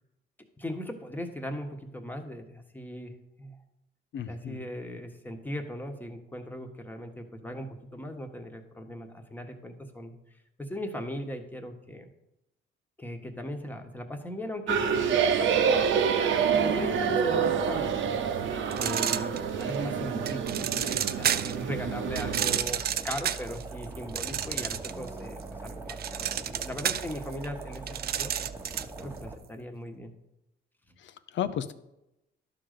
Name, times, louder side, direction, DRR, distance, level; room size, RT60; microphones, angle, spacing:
voice 1, 0.6-3.1 3.4-3.6 4.3-10.1 10.6-12.1 13.0-15.9 16.6-18.1 18.8-28.5 29.0-30.1, left 1 dB, 10° left, 4 dB, 1.3 m, -38 dB
voice 2, 4.1-4.7 31.0-31.7, left 9 dB, 70° left, 13 dB, 0.7 m, -34 dB
sound 1, 14.7-22.6, right 7 dB, 75° right, 0.9 m, -27 dB
sound 2, 18.7-19.7 20.3-21.6 22.1-25.1 25.4-29.0, right 10 dB, 50° right, 0.5 m, -31 dB
sound 3, 22.6-29.4, right 3 dB, 10° right, 1.2 m, -42 dB
11.5 x 3.9 x 6.6 m, 0.89 s
cardioid pair, 90°, 20 cm